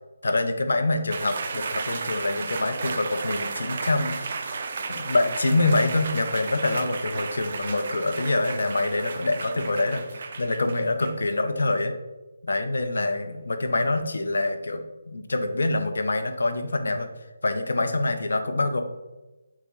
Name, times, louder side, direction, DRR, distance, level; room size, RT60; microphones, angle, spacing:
voice 1, 0.2-4.5 4.9-11.9 12.4-17.1 17.4-18.8, left 2 dB, 75° left, 7 dB, 0.5 m, -25 dB
sound 1, 1.1-11.3, right 4 dB, 35° right, 0.3 m, -34 dB
4.6 x 2.0 x 4.0 m, 1.1 s
hypercardioid pair, 175°, 0 cm